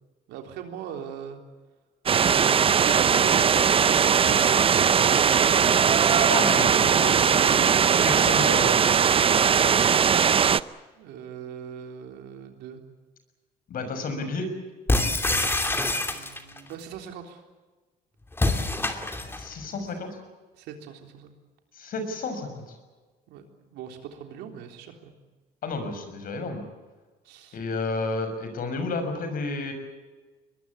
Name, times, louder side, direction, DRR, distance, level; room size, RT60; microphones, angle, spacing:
voice 1, 0.3-1.4 2.8-5.6 6.7-7.5 11.0-12.8 16.1-17.4 20.5-21.3 23.3-25.2 27.2-27.6, right 8 dB, 90° right, 4 dB, 3.7 m, -40 dB
sound 1, 2.1-10.6, right 7 dB, 35° right, 0.7 m, -20 dB
voice 2, 6.3-8.8 13.7-14.5 19.4-20.1 21.8-22.8 25.6-26.6 27.5-29.7, left 3 dB, 60° left, 8 dB, 6.5 m, -31 dB
sound 2, 14.9-16.6 18.3-19.5, left 2 dB, 15° left, 2.7 m, -25 dB
23.0 x 21.5 x 8.4 m, 1.3 s
cardioid pair, 110°, 17 cm